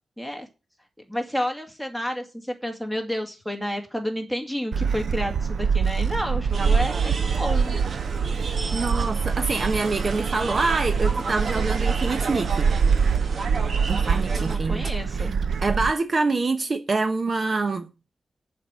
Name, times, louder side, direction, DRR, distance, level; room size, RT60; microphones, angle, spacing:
voice 1, 0.2-0.5 1.1-7.8 14.4-15.3, equal, 5° right, 2.5 m, -30 dB
Gull seagull, 4.7-15.9, right 6 dB, 85° right, 0.6 m, -24 dB
sound 1, 6.5-14.6, right 4 dB, 65° right, 1.6 m, -33 dB
voice 2, 8.7-12.7 13.9-15.3 15.6-17.9, right 3 dB, 40° right, 0.9 m, -26 dB
11.0 x 5.4 x 8.0 m
wide cardioid pair, 145°, 0 cm